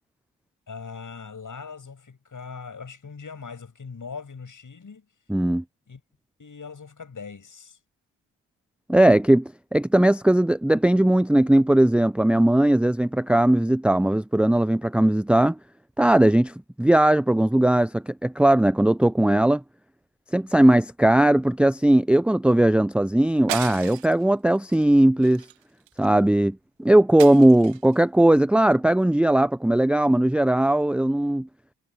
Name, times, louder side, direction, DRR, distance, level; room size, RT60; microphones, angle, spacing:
voice 1, 0.7-5.1 5.9-6.0 6.4-7.8, left 5 dB, 40° left, 7.5 m, -40 dB
voice 2, 5.3-5.6 8.9-15.6 16.0-19.6 20.3-25.4 26.0-31.5, right 1 dB, ahead, 0.7 m, -19 dB
sound 1, 23.5-24.2 24.7-24.9 25.2-26.2 27.2-28.0, right 14 dB, 70° right, 1.8 m, -35 dB
hypercardioid pair, 40°, 46 cm